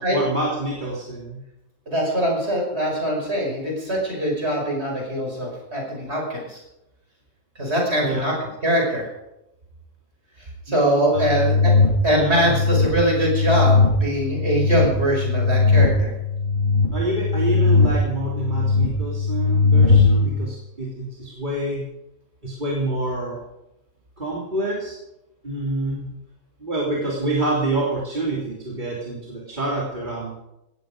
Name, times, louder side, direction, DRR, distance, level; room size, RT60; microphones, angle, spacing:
voice 1, 0.1-1.4 7.9-8.2 10.7-11.4 12.1-12.6 16.9-21.9 22.4-23.4 24.2-25.0 25.4-26.1 26.6-30.3, right 2 dB, 35° right, -5 dB, 3.3 m, -27 dB
voice 2, 1.9-6.6 7.6-8.3 8.6-9.1 10.4-11.7 12.0-16.1, right 1 dB, 50° right, 0 dB, 6.0 m, -23 dB
sound 1, 11.1-20.3, left 4 dB, 75° left, 5.2 m, -19 dB
18.5 x 14.5 x 5.2 m, 0.90 s
omnidirectional pair, 1.4 m